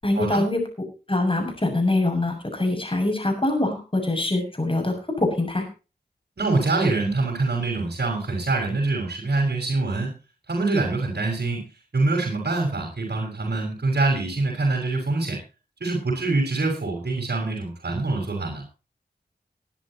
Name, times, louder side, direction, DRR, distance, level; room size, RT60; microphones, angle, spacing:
voice 1, 0.0-0.6 1.1-5.7, left 2 dB, 30° left, 4 dB, 7.0 m, -24 dB
voice 2, 6.4-10.1 10.5-11.7 11.9-15.4 15.8-18.6, right 3 dB, 70° right, 0 dB, 5.9 m, -24 dB
21.0 x 11.0 x 3.0 m, 0.32 s
wide cardioid pair, 50°, 17 cm